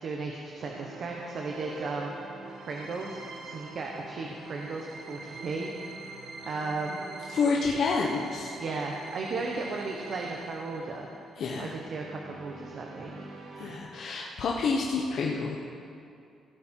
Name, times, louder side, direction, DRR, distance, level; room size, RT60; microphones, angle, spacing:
voice 1, 0.0-2.1 2.7-5.7 6.5-7.0 8.6-11.1 11.6-13.1, right 3 dB, 55° right, 0 dB, 1.2 m, -35 dB
sound 1, 0.6-13.8, right 3 dB, 70° right, 1.6 m, -44 dB
voice 2, 7.3-8.5 11.4-11.7 13.6-15.6, left 4 dB, 65° left, -2 dB, 1.0 m, -28 dB
16.5 x 8.5 x 4.6 m, 2.6 s
cardioid pair, 90°, 0 cm